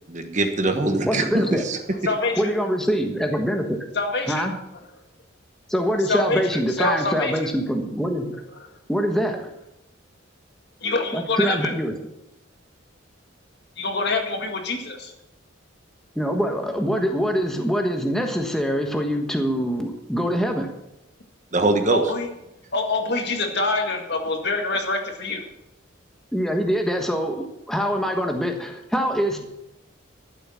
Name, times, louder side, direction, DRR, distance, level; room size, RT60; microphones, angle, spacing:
voice 1, 0.1-1.8 21.5-22.0, right 2 dB, 35° right, 6 dB, 1.3 m, -22 dB
voice 2, 1.1-1.6 2.4-3.8 4.3-4.5 5.7-8.3 8.9-9.5 11.1-12.0 16.1-20.7 26.3-29.4, equal, ahead, 3 dB, 1.3 m, -24 dB
voice 3, 2.1-2.5 4.0-4.4 6.1-6.4 6.8-7.3 10.8-11.7 13.8-15.1 21.9-22.3 22.7-25.4, left 3 dB, 55° left, 3 dB, 2.0 m, -25 dB
13.0 x 7.9 x 7.3 m, 0.88 s
head